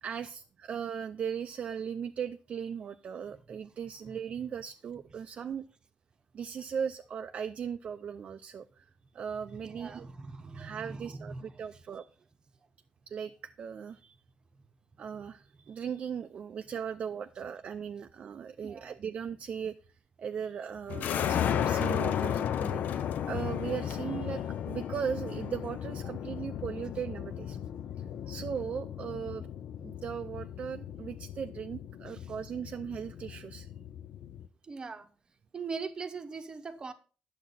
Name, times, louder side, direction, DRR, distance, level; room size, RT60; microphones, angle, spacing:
voice 1, 0.0-5.6 6.3-8.9 9.1-10.1 10.5-12.1 13.1-14.2 15.0-27.6 28.3-29.5 29.8-33.7, right 7 dB, 45° right, 0.4 m, -38 dB
voice 2, 9.5-11.8 18.6-18.9 32.1-32.3 34.6-35.1 35.5-36.9, right 4 dB, 25° right, 0.9 m, -41 dB
sound 1, 20.9-34.5, left 9 dB, 65° left, 0.5 m, -35 dB
10.0 x 7.3 x 4.1 m
wide cardioid pair, 165°, 3 cm